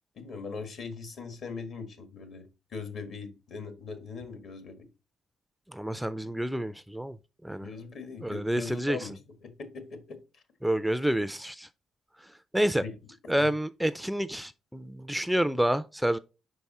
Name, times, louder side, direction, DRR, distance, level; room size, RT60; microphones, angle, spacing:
voice 1, 0.1-4.9 7.6-10.4 12.8-12.9 13.2-13.5, left 5 dB, 65° left, 1.5 m, -41 dB
voice 2, 5.7-7.2 7.4-7.7 8.2-9.0 10.6-11.7 12.5-12.8 13.3-16.2, right 1 dB, ahead, 0.3 m, -28 dB
5.2 x 4.7 x 4.2 m
cardioid pair, 90°, 0 cm